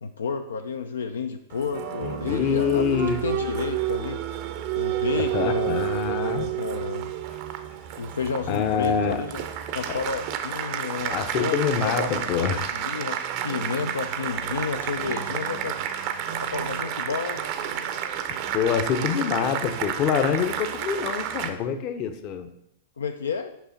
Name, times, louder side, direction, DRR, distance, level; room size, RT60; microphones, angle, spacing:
voice 1, 0.0-4.2 4.7-7.1 8.0-9.4 9.7-13.2 13.4-15.8 16.4-17.4 23.0-23.5, left 5 dB, 75° left, 7 dB, 0.4 m, -31 dB
Applause, 1.5-21.5, right 10 dB, 45° right, 0.6 m, -30 dB
voice 2, 2.3-3.2 5.1-6.5 8.5-9.2 9.9-10.0 11.1-12.8 18.5-22.5, left 7 dB, 40° left, 9 dB, 0.7 m, -25 dB
6.1 x 5.6 x 4.0 m, 0.77 s
figure-of-eight pair, 100°, 0 cm